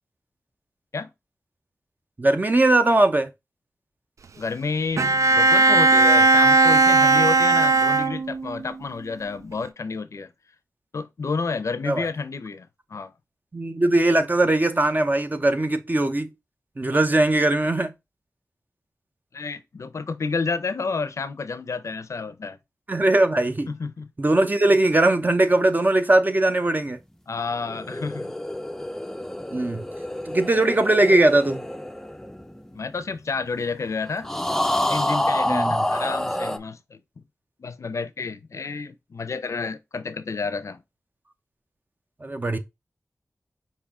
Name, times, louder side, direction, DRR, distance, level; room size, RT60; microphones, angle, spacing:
voice 1, 2.2-3.3 11.9-12.1 13.5-16.3 16.8-17.9 22.9-23.7 24.2-27.0 29.5-29.8 30.3-31.7 35.5-35.9 42.2-42.6, right 2 dB, 35° right, 0.7 m, -20 dB
voice 2, 4.4-10.3 10.9-13.1 19.3-22.6 23.7-24.1 27.3-28.3 32.7-34.3 34.9-37.0 37.6-40.8, left 4 dB, 70° left, 0.5 m, -30 dB
Bowed string instrument, 5.0-8.6, right 3 dB, 80° right, 0.3 m, -17 dB
sound 1, 27.6-33.2 34.2-36.6, left 1 dB, 5° left, 0.5 m, -28 dB
5.4 x 2.6 x 3.6 m
wide cardioid pair, 65°, 5 cm